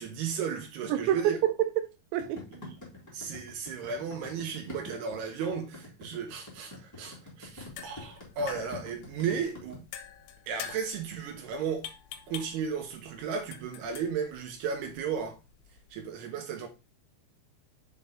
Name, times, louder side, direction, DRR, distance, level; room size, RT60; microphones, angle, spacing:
voice 1, 0.0-1.4 2.5-2.8 3.1-9.8 10.5-11.9 12.3-15.4 15.9-16.7, right 6 dB, 70° right, 3.0 m, -34 dB
voice 2, 0.9-2.5, right 12 dB, 90° right, 2.9 m, -28 dB
sound 1, 2.2-9.8, left 2 dB, 25° left, 0.3 m, -46 dB
sound 2, 7.5-16.1, left 10 dB, 85° left, 3.0 m, -47 dB
6.9 x 4.0 x 3.5 m
omnidirectional pair, 5.1 m